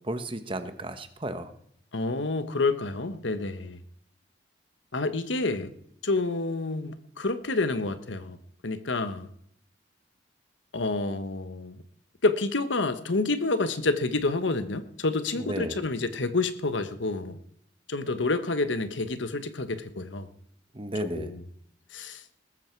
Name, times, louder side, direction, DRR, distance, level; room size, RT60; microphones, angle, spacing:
voice 1, 0.0-1.5 15.4-15.8 20.7-21.3, right 1 dB, 25° right, 1.2 m, -33 dB
voice 2, 1.9-3.8 4.9-5.7 6.0-8.4 8.6-9.3 10.7-11.8 12.2-17.4 17.9-20.3 21.0-21.4 21.9-22.2, left 3 dB, 75° left, 1.1 m, -28 dB
20.0 x 13.5 x 4.6 m
head